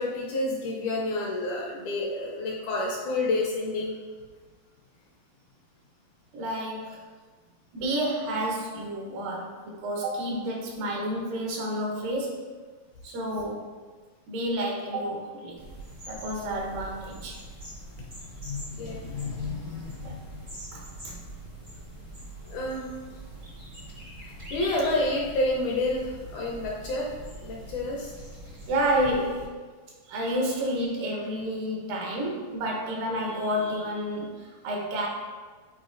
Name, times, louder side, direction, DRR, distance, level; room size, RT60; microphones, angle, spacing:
voice 1, 0.0-3.9 18.4-20.4 22.5-22.9 24.5-27.1 27.4-28.1, left 2 dB, 75° left, -2 dB, 1.9 m, -29 dB
voice 2, 6.3-7.0 7.7-12.4 13.0-13.6 14.3-15.6 16.1-17.4 20.0-20.1 20.7-21.2 28.7-29.5 30.1-35.1, equal, 75° right, -1 dB, 2.7 m, -30 dB
sound 1, 15.6-29.5, right 1 dB, 45° right, 0.7 m, -43 dB
8.7 x 4.4 x 2.5 m, 1.4 s
omnidirectional pair, 4.0 m